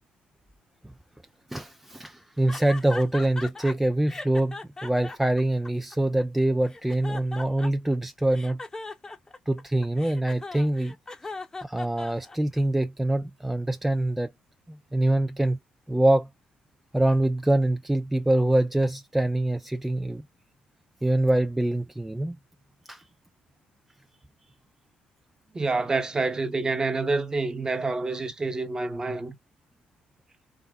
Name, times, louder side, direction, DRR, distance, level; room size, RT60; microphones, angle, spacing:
voice 1, 1.5-8.6 9.5-11.0 11.6-14.3 14.7-15.6 15.9-16.3 16.9-20.2 21.0-22.4 22.9-23.0, right 1 dB, 5° right, 0.3 m, -24 dB
sound 1, 2.5-3.7 4.1-6.2 6.7-8.0 8.3-12.6, left 3 dB, 20° left, 0.8 m, -39 dB
voice 2, 25.5-29.4, right 3 dB, 25° right, 0.9 m, -27 dB
3.6 x 2.6 x 3.4 m
cardioid pair, 95°, 3 cm